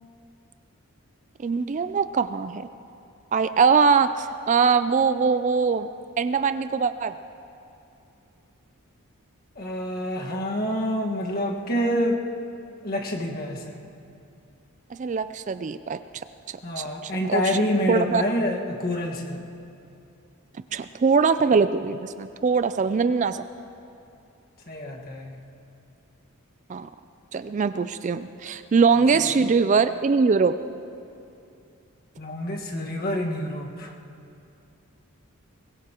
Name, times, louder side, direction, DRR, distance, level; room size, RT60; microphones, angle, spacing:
voice 1, 1.4-2.7 3.3-5.9 6.2-7.1 14.9-16.0 16.8-17.6 17.9-18.2 20.7-23.5 26.7-26.9 27.3-30.6, right 5 dB, 35° right, 12 dB, 0.3 m, -22 dB
voice 2, 9.5-12.2 12.8-13.8 16.6-19.4 24.7-25.4 29.4-29.5 32.2-33.9, left 1 dB, 40° left, 0 dB, 1.6 m, -27 dB
23.0 x 21.0 x 3.0 m, 2.6 s
head